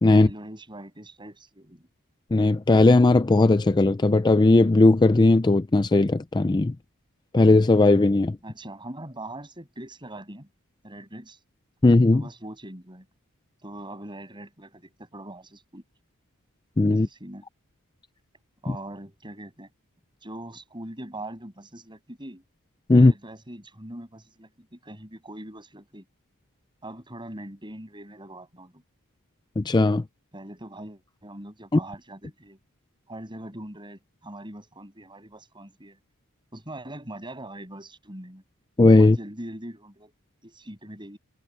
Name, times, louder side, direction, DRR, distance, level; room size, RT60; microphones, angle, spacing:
voice 1, 0.1-1.9 8.4-10.5 10.8-11.4 12.1-13.1 13.6-15.8 16.9-17.4 18.6-19.7 20.2-22.4 22.9-26.0 26.8-28.8 30.3-32.6 33.1-36.0 36.5-38.4 39.0-40.1 40.4-41.2, right 1 dB, 20° right, 7.6 m, -41 dB
voice 2, 2.3-6.7 7.3-8.4 11.8-12.2 16.8-17.1 22.9-23.1 29.6-30.0 38.8-39.2, left 2 dB, 20° left, 0.4 m, -17 dB
head